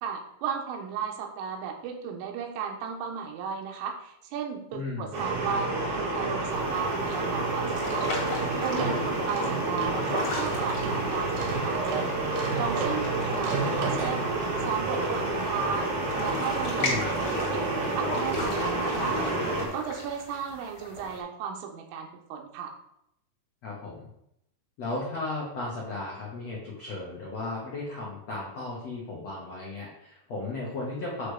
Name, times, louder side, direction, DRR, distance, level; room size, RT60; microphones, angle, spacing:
voice 1, 0.0-14.4 14.7-22.8, right 7 dB, 90° right, 2 dB, 3.8 m, -35 dB
voice 2, 4.7-5.1 9.2-9.3 16.8-17.0 23.6-24.1 24.8-31.3, left 2 dB, 75° left, -5 dB, 1.5 m, -35 dB
sound 1, 5.1-19.6, right 2 dB, 45° right, 2.9 m, -29 dB
sound 2, 6.5-21.2, left 2 dB, 35° left, 1.8 m, -39 dB
sound 3, 8.2-14.8, right 4 dB, 70° right, 3.0 m, -37 dB
9.1 x 3.4 x 6.5 m, 0.78 s
omnidirectional pair, 5.7 m